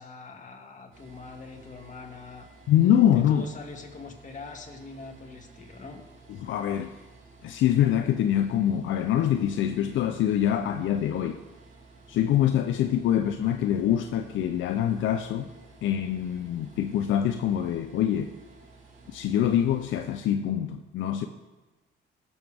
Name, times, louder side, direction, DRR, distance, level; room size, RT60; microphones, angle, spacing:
voice 1, 0.0-2.5 3.1-6.0, left 3 dB, 40° left, 2.0 m, -43 dB
sound 1, 0.9-20.2, right 3 dB, 80° right, 2.8 m, -53 dB
voice 2, 2.7-3.5 6.4-6.9 7.4-11.4 12.1-15.5 15.8-18.3 19.1-21.3, left 10 dB, 80° left, 0.6 m, -24 dB
18.0 x 7.2 x 3.5 m
cardioid pair, 90°, 20 cm